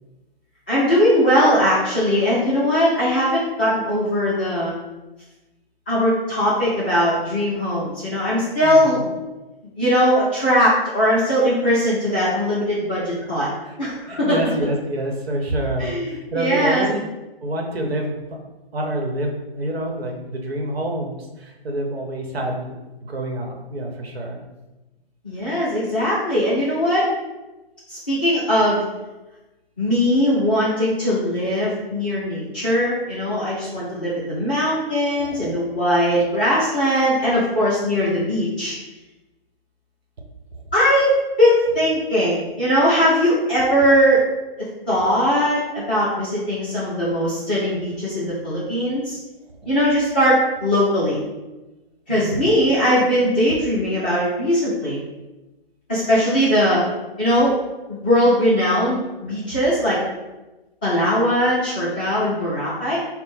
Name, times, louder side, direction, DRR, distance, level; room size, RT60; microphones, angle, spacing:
voice 1, 0.7-4.7 5.9-9.0 9.8-13.5 13.8-14.4 15.8-16.9 25.2-27.1 27.9-28.8 29.8-38.7 40.7-44.2 44.9-49.2 49.6-51.2 52.1-55.0 55.9-56.8 57.2-57.5 57.9-60.0 60.8-63.0, equal, 10° left, -12 dB, 0.4 m, -20 dB
voice 2, 8.6-9.1 13.6-13.8 14.1-17.0 17.4-18.1 18.7-22.7 23.0-24.4 35.2-35.5 36.2-36.3 52.1-52.5, right 1 dB, 75° right, 2 dB, 0.9 m, -27 dB
3.7 x 2.0 x 4.2 m, 1.1 s
hypercardioid pair, 160°, 30 cm